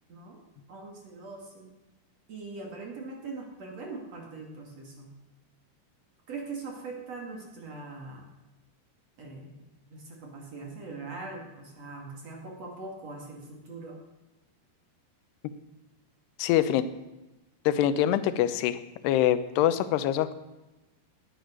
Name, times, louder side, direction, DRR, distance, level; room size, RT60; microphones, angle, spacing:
voice 1, 0.1-0.4 0.7-1.7 2.3-5.1 6.3-8.3 9.2-9.6 9.9-14.0, right 3 dB, 40° right, 1 dB, 3.0 m, -41 dB
voice 2, 16.4-16.9 17.7-18.8 19.0-20.3, left 11 dB, 75° left, 12 dB, 2.8 m, -24 dB
18.5 x 11.0 x 6.5 m, 1.0 s
omnidirectional pair, 5.2 m